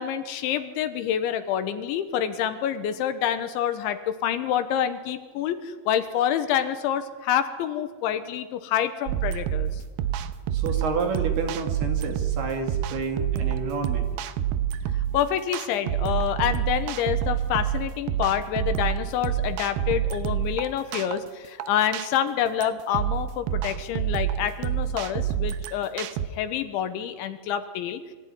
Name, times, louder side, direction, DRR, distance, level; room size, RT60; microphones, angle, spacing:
voice 1, 0.0-9.8 15.1-28.1, left 9 dB, 75° left, 10 dB, 3.4 m, -27 dB
sound 1, 9.1-26.3, right 10 dB, 75° right, 2.6 m, -28 dB
voice 2, 10.5-14.1, right 4 dB, 60° right, 4 dB, 4.1 m, -29 dB
24.0 x 15.5 x 9.5 m, 1.4 s
omnidirectional pair, 5.6 m